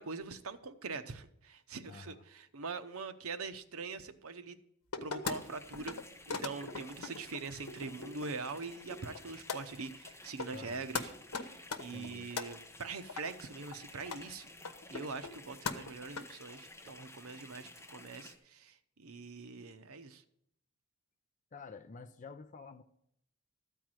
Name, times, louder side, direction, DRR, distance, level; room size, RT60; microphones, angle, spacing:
voice 1, 0.0-4.6 5.0-6.0 6.3-14.5 14.9-20.2, right 4 dB, 75° right, 0.8 m, -43 dB
voice 2, 1.9-2.2 10.5-10.8 11.9-12.3 21.5-22.8, left 4 dB, 35° left, 0.5 m, -49 dB
sound 1, 4.9-5.4 5.7-6.0 6.3-8.3 8.6-9.2 9.5-9.6 10.1-10.2 10.4-10.7 10.9-11.0 11.3-12.5 13.1-13.2 13.7-13.8 14.0-14.2 14.6-15.4 15.7-16.2, left 4 dB, 90° left, 1.0 m, -39 dB
sound 2, 5.2-18.3, left 2 dB, 10° left, 1.3 m, -54 dB
13.5 x 4.6 x 8.9 m
head